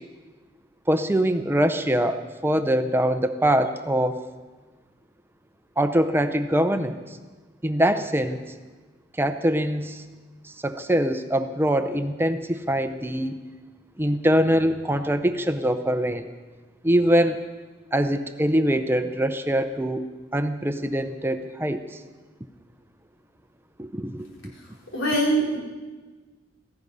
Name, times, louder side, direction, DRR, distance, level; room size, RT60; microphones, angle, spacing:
voice 1, 0.9-4.2 5.8-7.0 7.6-8.4 9.2-10.0 10.4-13.4 14.0-16.3 16.8-17.4 17.9-20.0 20.3-21.8 23.8-24.3, equal, 10° right, 8 dB, 0.6 m, -23 dB
voice 2, 24.9-25.6, right 1 dB, 90° left, -2 dB, 4.3 m, -22 dB
16.5 x 15.5 x 5.5 m, 1.3 s
head